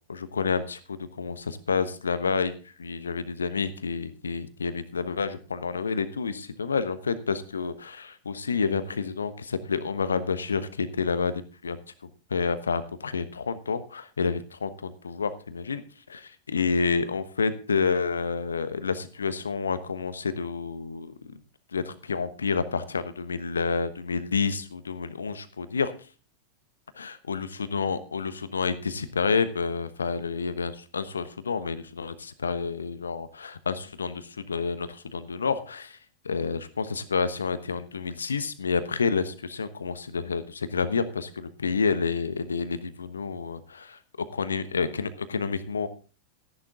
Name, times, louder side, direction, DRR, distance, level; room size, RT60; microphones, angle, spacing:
voice 1, 0.1-2.5 2.8-11.8 12.3-15.8 16.1-21.4 21.7-25.9 27.0-36.0 36.2-45.9, left 5 dB, 70° left, 13 dB, 1.1 m, -29 dB
13.5 x 11.0 x 3.6 m, 0.37 s
figure-of-eight pair, 90°, 0 cm